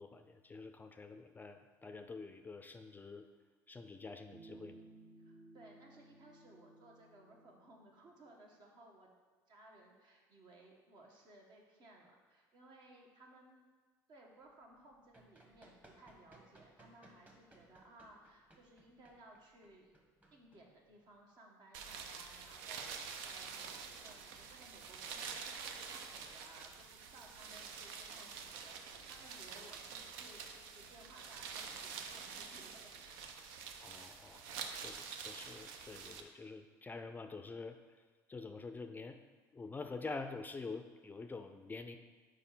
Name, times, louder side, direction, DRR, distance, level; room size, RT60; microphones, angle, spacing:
voice 1, 0.0-3.3 3.7-4.8 33.8-37.8 38.3-39.2 39.5-42.0, left 3 dB, 20° left, 7 dB, 0.4 m, -47 dB
sound 1, 4.3-8.1, right 2 dB, 40° right, 0.7 m, -59 dB
voice 2, 5.2-9.1 9.5-13.6 14.1-19.9 20.3-33.2, right 1 dB, 55° right, 0 dB, 1.4 m, -60 dB
Run, 14.8-21.2, right 2 dB, 15° right, 1.2 m, -64 dB
sound 2, 21.7-36.2, right 6 dB, 80° right, 0.5 m, -47 dB
4.8 x 4.3 x 5.6 m, 1.4 s
supercardioid pair, 80°, 9 cm